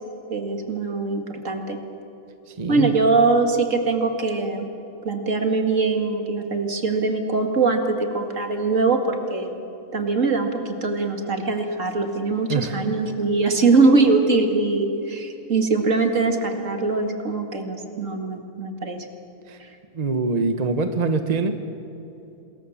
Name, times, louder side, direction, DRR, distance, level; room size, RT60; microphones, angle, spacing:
voice 1, 0.3-1.8 2.7-4.7 5.0-9.6 9.9-19.1 19.6-19.7, right 3 dB, 65° right, 5 dB, 2.5 m, -22 dB
voice 2, 2.6-2.9 12.5-12.8 19.5-19.6 19.9-21.5, right 3 dB, 30° right, 8 dB, 1.2 m, -24 dB
27.0 x 21.5 x 7.3 m, 2.9 s
omnidirectional pair, 1.4 m